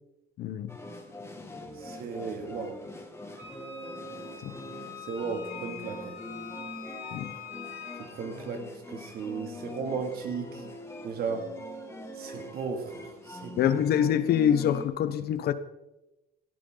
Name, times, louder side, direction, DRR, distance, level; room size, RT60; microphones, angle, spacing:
voice 1, 0.4-0.8 4.4-4.5 7.1-7.3 13.6-15.5, left 9 dB, 70° left, 1.0 m, -25 dB
sound 1, 0.7-14.9, left 1 dB, 15° left, 2.2 m, -43 dB
voice 2, 1.7-2.8 5.0-6.2 8.0-10.6 11.0-11.6 12.1-13.6, right 5 dB, 65° right, 2.6 m, -35 dB
Wind instrument woodwind instrument, 3.4-8.1, left 7 dB, 15° right, 4.8 m, -44 dB
17.5 x 13.5 x 4.0 m
cardioid pair, 110°, 17 cm